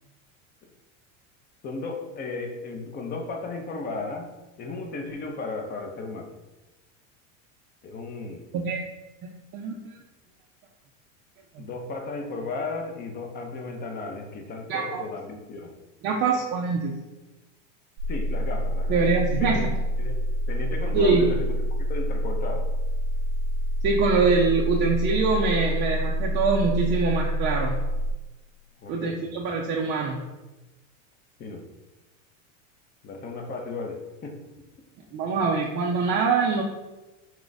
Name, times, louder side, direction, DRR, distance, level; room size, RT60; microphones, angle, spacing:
voice 1, 1.6-4.3 4.6-6.3 7.8-8.5 11.6-15.7 18.1-19.0 19.4-19.7 20.0-20.2 20.5-21.5 21.9-22.7 28.8-29.2 31.4-31.7 33.0-34.4, left 3 dB, 25° left, 3 dB, 0.5 m, -34 dB
voice 2, 9.5-9.9 11.6-11.7 14.7-15.0 16.0-16.9 18.9-19.8 20.9-21.3 23.8-27.8 28.9-30.2 35.1-36.6, right 4 dB, 30° right, -2 dB, 0.3 m, -24 dB
sound 1, 18.0-28.1, equal, 75° right, 0.6 m, -27 dB
4.3 x 2.3 x 3.9 m, 1.1 s
supercardioid pair, 125°, 41 cm